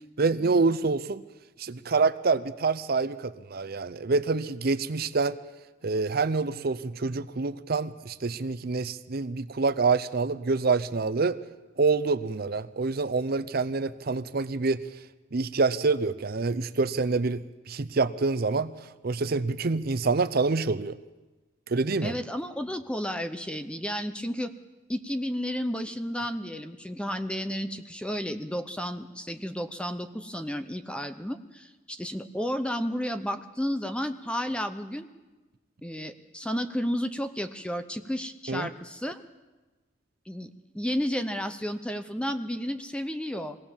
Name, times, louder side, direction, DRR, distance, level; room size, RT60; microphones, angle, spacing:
voice 1, 0.2-1.2 1.6-5.4 5.8-11.4 11.8-14.8 15.3-18.7 19.0-21.0 21.7-22.1 38.5-38.7, right 4 dB, 50° right, 14 dB, 0.6 m, -26 dB
voice 2, 22.0-24.5 24.9-35.1 35.8-39.2 40.3-43.6, equal, 5° left, 9 dB, 0.8 m, -32 dB
22.5 x 17.0 x 7.2 m, 1.2 s
head